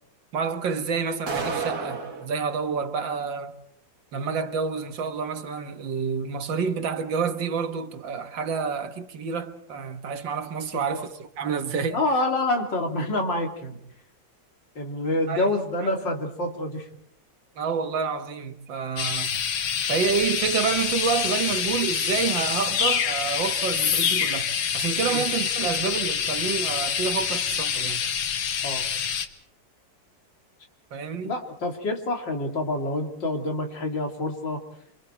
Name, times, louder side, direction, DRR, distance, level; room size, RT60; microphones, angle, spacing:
voice 1, 0.3-3.5 4.1-12.0 15.3-15.4 15.8-15.9 17.6-19.3 19.9-28.0 30.9-31.4, right 6 dB, 75° right, 2.2 m, -28 dB
sound 1, 1.3-2.3, right 4 dB, 50° right, 2.4 m, -30 dB
voice 2, 10.7-11.1 11.9-13.8 14.8-16.9 25.1-25.2 28.6-28.9 31.2-34.6, left 2 dB, 70° left, 3.7 m, -27 dB
sound 2, 19.0-29.3, left 7 dB, 90° left, 2.1 m, -26 dB
28.5 x 25.5 x 4.6 m
omnidirectional pair, 2.1 m